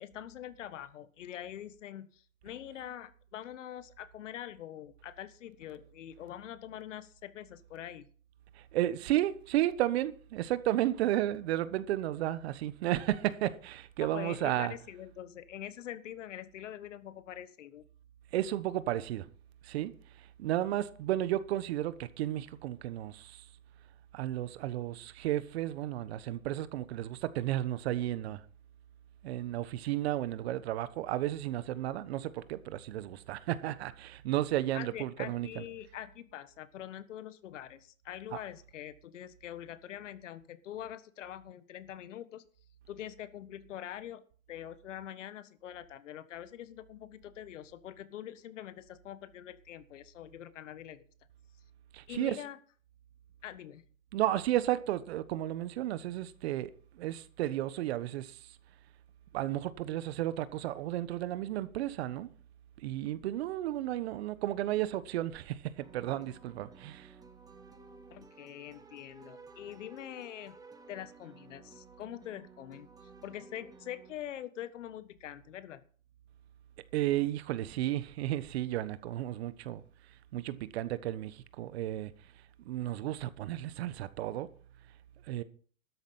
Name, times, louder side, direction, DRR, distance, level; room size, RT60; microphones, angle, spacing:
voice 1, 0.0-8.1 14.0-17.8 34.7-42.4 42.9-44.2 44.5-51.0 52.1-52.6 53.4-53.8 68.1-70.6 70.9-75.8, left 11 dB, 65° left, 1.5 m, -44 dB
voice 2, 8.6-14.7 18.3-19.2 19.6-19.9 20.4-23.4 24.1-28.4 29.2-35.6 51.9-52.4 54.1-58.4 59.3-62.3 62.8-67.1 76.9-79.8 80.3-82.1 82.6-84.5 85.3-85.4, right 14 dB, 50° right, 1.2 m, -33 dB
sound 1, 65.8-74.1, right 4 dB, 10° right, 1.5 m, -55 dB
13.0 x 10.5 x 5.5 m
hypercardioid pair, 130°, 40 cm